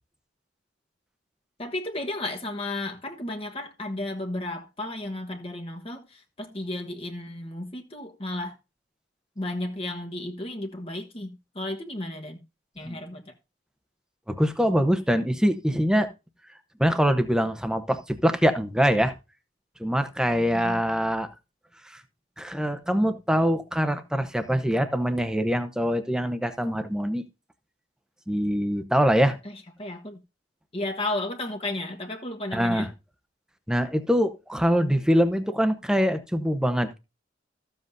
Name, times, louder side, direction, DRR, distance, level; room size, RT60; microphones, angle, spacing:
voice 1, 1.6-8.5 9.4-12.4 12.7-13.3 20.5-20.8 29.4-30.2 30.7-32.9, left 2 dB, 30° left, 1.2 m, -33 dB
voice 2, 14.3-16.1 16.8-19.1 19.8-21.3 22.4-27.2 28.3-29.4 32.5-32.9 33.7-37.0, equal, 5° right, 0.9 m, -24 dB
14.0 x 7.6 x 2.6 m
head